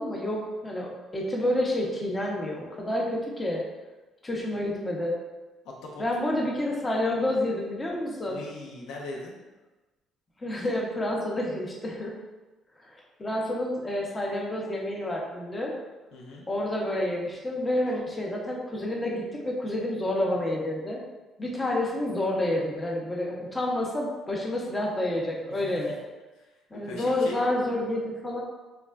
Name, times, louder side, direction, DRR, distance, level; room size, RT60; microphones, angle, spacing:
voice 1, 0.0-3.6 4.2-5.2 6.0-8.4 10.4-12.1 12.8-12.9 13.2-15.7 16.5-21.0 21.4-26.0 26.7-28.4, left 1 dB, 20° left, -2 dB, 0.6 m, -29 dB
voice 2, 5.6-6.2 7.2-7.3 8.2-9.3 16.1-16.4 26.7-27.4, left 2 dB, 80° left, -2 dB, 0.4 m, -40 dB
3.3 x 2.0 x 2.3 m, 1.1 s
supercardioid pair, 75°, 0 cm